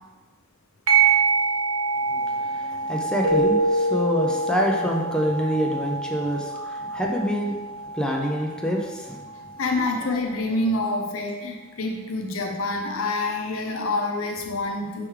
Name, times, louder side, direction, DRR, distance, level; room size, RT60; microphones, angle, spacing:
sound 1, 0.9-9.9, right 5 dB, 70° right, 0.5 m, -27 dB
voice 1, 2.1-7.6 7.9-9.2 10.1-10.2, equal, 5° left, -1 dB, 0.3 m, -26 dB
Keyboard (musical), 3.2-5.3, equal, 90° right, 1.0 m, -24 dB
voice 2, 9.4-15.1, left 2 dB, 80° left, 2 dB, 0.6 m, -27 dB
4.5 x 3.4 x 3.1 m, 1.3 s
head